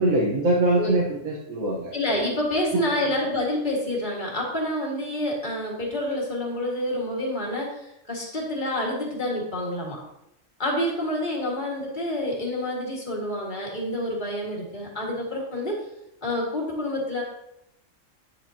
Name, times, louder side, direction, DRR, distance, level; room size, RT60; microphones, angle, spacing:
voice 1, 0.0-1.9 2.7-3.1, right 2 dB, 85° right, -4 dB, 1.6 m, -23 dB
voice 2, 1.9-10.0 10.6-15.8 16.2-17.2, left 1 dB, 35° left, -3 dB, 2.1 m, -28 dB
8.9 x 8.1 x 2.9 m, 0.84 s
omnidirectional pair, 1.4 m